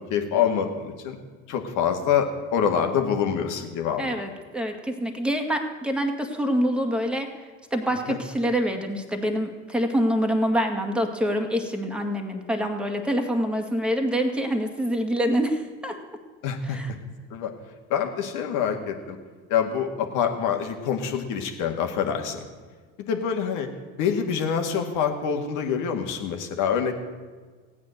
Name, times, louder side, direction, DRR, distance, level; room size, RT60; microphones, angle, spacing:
voice 1, 0.1-1.2 1.5-4.0 8.1-8.2 16.4-16.8 17.3-17.5 17.9-19.2 19.5-22.4 23.1-23.7 24.0-26.9, left 7 dB, 55° left, 4 dB, 2.0 m, -25 dB
voice 2, 4.0-7.3 7.7-16.0 16.6-16.9, equal, 5° right, 4 dB, 2.0 m, -26 dB
15.5 x 9.5 x 6.6 m, 1.5 s
hypercardioid pair, 75°, 36 cm